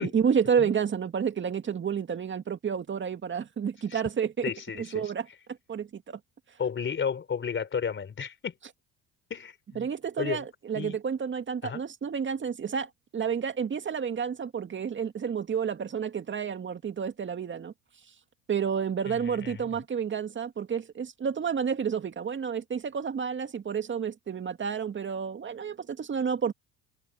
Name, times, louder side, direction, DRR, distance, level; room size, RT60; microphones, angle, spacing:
voice 1, 0.0-4.5 4.8-5.3 5.7-6.2 9.8-17.7 18.5-26.5, right 7 dB, 35° right, 2.2 m, -30 dB
voice 2, 4.4-5.1 6.6-8.5 9.3-9.9 10.2-10.4 10.7-11.0 11.6-11.8 19.1-19.6, left 7 dB, 35° left, 4.1 m, -33 dB
supercardioid pair, 80°, 34 cm